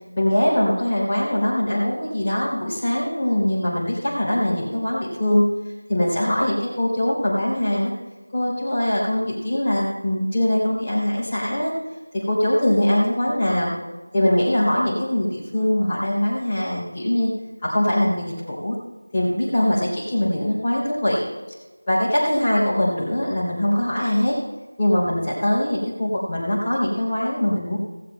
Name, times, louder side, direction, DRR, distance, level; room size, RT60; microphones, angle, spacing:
voice 1, 0.1-5.4 5.9-7.9 8.3-11.7 12.1-13.7 14.1-17.3 17.6-18.7 19.1-21.3 21.9-24.4 24.8-27.8, left 1 dB, 15° left, -11 dB, 3.1 m, -22 dB
17.0 x 16.5 x 2.2 m, 1.2 s
figure-of-eight pair, 175°, 0 cm